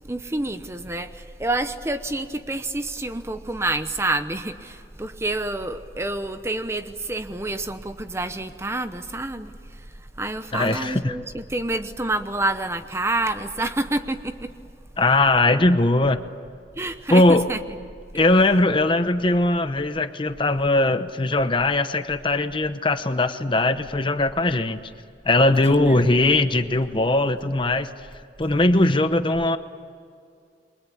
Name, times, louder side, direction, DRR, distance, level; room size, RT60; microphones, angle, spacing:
voice 1, 0.1-9.5 10.2-14.5 16.8-17.6 25.7-26.1, right 2 dB, 15° right, 9 dB, 0.9 m, -28 dB
voice 2, 10.5-11.2 15.0-16.2 17.1-17.5 18.1-24.8 25.2-27.9 28.4-29.6, left 2 dB, 25° left, 10 dB, 0.9 m, -20 dB
29.0 x 23.5 x 8.6 m, 2.3 s
head